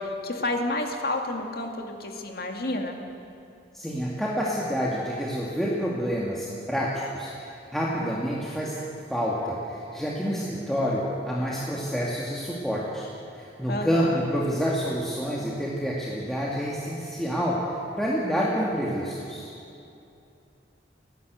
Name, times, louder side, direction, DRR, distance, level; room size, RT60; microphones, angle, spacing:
voice 1, 0.0-3.0 13.7-14.2, left 2 dB, 55° left, 3 dB, 2.2 m, -30 dB
voice 2, 3.7-7.3 7.7-8.8 9.1-13.1 13.4-17.6 18.0-19.5, equal, ahead, -5 dB, 2.0 m, -28 dB
30.0 x 11.0 x 8.1 m, 2.7 s
head